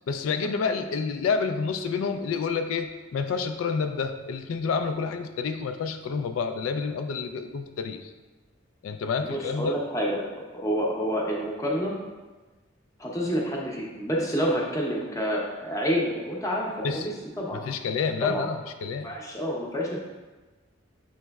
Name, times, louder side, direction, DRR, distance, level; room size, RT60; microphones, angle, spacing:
voice 1, 0.1-8.1 8.8-9.8 16.8-17.1 17.6-19.1, left 5 dB, 90° left, 7 dB, 0.3 m, -29 dB
voice 2, 9.2-10.2 10.5-11.9 13.0-17.6 18.2-18.5 19.0-20.0, equal, 15° left, -2 dB, 0.6 m, -28 dB
7.3 x 3.0 x 2.3 m, 1.2 s
head